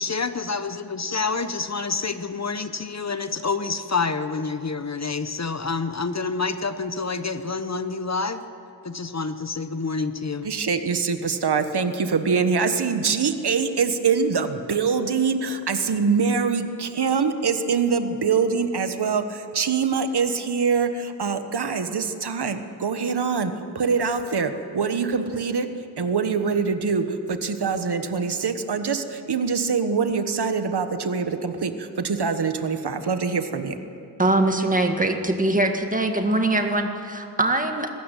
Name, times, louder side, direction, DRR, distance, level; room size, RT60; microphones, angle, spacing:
voice 1, 0.0-8.4 8.8-10.5, left 4 dB, 40° left, 11 dB, 0.9 m, -28 dB
voice 2, 10.4-25.7 26.0-33.8, right 5 dB, 70° right, 9 dB, 1.3 m, -24 dB
voice 3, 34.2-37.9, right 2 dB, 20° right, 4 dB, 1.8 m, -22 dB
22.0 x 13.0 x 9.1 m, 2.5 s
wide cardioid pair, 95°, 40 cm